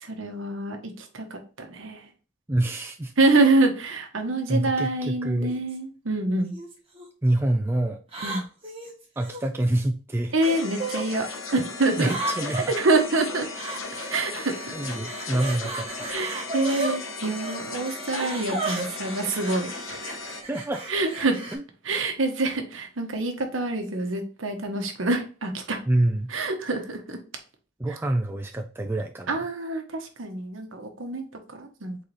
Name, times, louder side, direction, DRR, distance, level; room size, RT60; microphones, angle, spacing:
voice 1, 0.0-2.0 3.2-6.5 8.2-8.4 10.3-11.3 11.5-12.1 12.8-13.5 14.1-14.5 16.1-20.0 20.9-21.4 21.8-25.8 26.3-27.2 29.3-31.2 31.5-32.0, right 2 dB, 70° right, 5 dB, 1.0 m, -26 dB
voice 2, 2.5-3.1 4.5-5.5 7.2-8.0 9.2-10.3 12.0-12.7 14.7-16.1 20.5-20.8 21.5-21.6 25.9-26.3 27.8-29.4, right 1 dB, 10° right, 3 dB, 0.3 m, -26 dB
sound 1, 5.5-5.8 6.5-7.0 8.1-9.5 10.5-11.0 12.0-12.7 13.5-14.2 14.4-17.0 17.4-17.6 18.1-21.6, right 2 dB, 25° right, 1.2 m, -34 dB
sound 2, 10.4-20.4, left 3 dB, 80° left, 1.1 m, -36 dB
4.0 x 3.9 x 3.2 m, 0.35 s
head